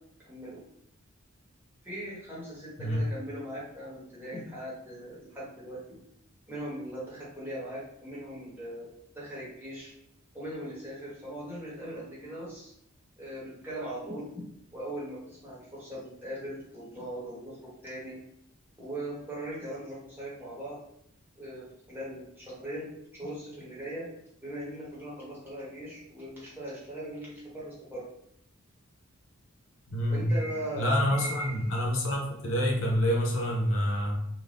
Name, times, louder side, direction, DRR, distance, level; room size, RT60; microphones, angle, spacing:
voice 1, 0.3-0.6 1.8-5.8 6.5-8.9 9.1-9.9 10.3-12.7 13.2-14.4 14.7-17.6 17.8-18.2 18.8-20.8 21.4-24.0 24.4-28.0 30.1-31.7, right 1 dB, 10° right, -8 dB, 1.0 m, -39 dB
voice 2, 29.9-30.3 30.8-34.2, equal, 75° left, -1 dB, 0.7 m, -27 dB
2.6 x 2.1 x 3.3 m, 0.73 s
head